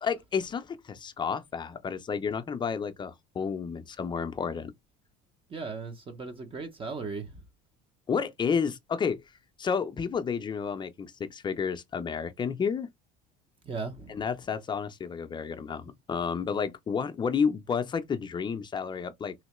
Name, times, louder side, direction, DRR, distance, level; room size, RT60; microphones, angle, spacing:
voice 1, 0.0-4.7 8.1-9.2 9.6-12.9 14.1-19.3, left 6 dB, 25° left, 0.5 m, -31 dB
voice 2, 5.5-7.4 13.6-14.2, right 4 dB, 30° right, 0.8 m, -37 dB
3.1 x 2.8 x 3.0 m
supercardioid pair, 105°, 19 cm